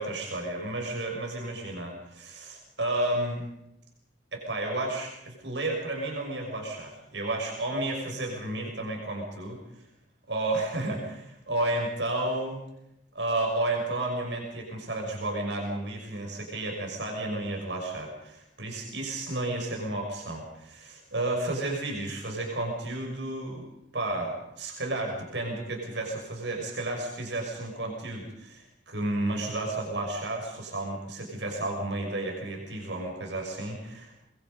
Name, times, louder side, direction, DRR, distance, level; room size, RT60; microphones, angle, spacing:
voice 1, 0.0-3.4 4.3-9.6 10.3-12.6 13.1-23.6 23.9-34.1, right 2 dB, 85° right, 1 dB, 6.1 m, -32 dB
25.0 x 22.0 x 5.5 m, 0.84 s
head